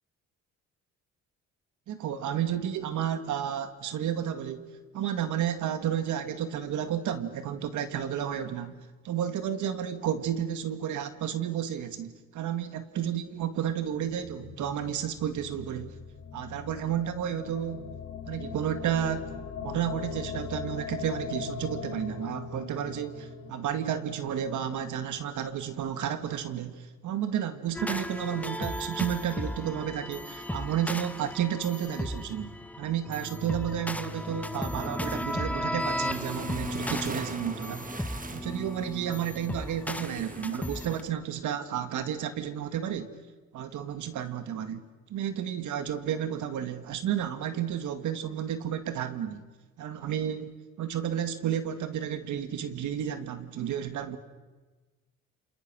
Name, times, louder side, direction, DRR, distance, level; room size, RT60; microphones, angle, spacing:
voice 1, 1.9-4.7 4.9-15.9 16.3-17.9 18.3-19.3 19.6-37.9 38.3-43.2 43.5-44.8 45.1-49.4 49.8-50.5 50.8-54.2, right 9 dB, 80° right, 10 dB, 2.0 m, -32 dB
sound 1, 13.9-26.1, left 6 dB, 65° left, 2.9 m, -41 dB
sound 2, 27.7-41.0, left 1 dB, 5° left, 1.1 m, -35 dB
sound 3, 35.8-41.1, right 4 dB, 25° right, 1.6 m, -43 dB
29.5 x 27.0 x 6.3 m, 1.3 s
cardioid pair, 90°, 30 cm